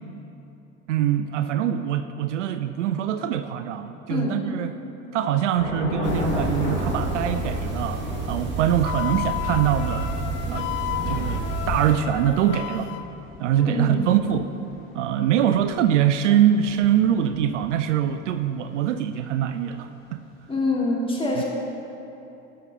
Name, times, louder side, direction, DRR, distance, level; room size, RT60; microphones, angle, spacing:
voice 1, 0.9-4.7 5.1-10.1 10.5-10.7 11.1-12.9 13.4-14.5 14.9-20.2 21.4-21.5, right 10 dB, 65° right, 10 dB, 0.5 m, -23 dB
voice 2, 4.1-4.4 13.6-14.1 20.5-21.4, left 2 dB, 15° left, -4 dB, 2.1 m, -25 dB
Thunder / Rain, 5.6-18.1, left 3 dB, 55° left, 1.7 m, -35 dB
sound 1, 6.0-11.9, right 2 dB, 30° right, 1.9 m, -30 dB
Wind instrument woodwind instrument, 8.8-13.0, left 12 dB, 30° left, 0.4 m, -32 dB
15.5 x 6.2 x 2.9 m, 2.9 s
figure-of-eight pair, 65°, 39 cm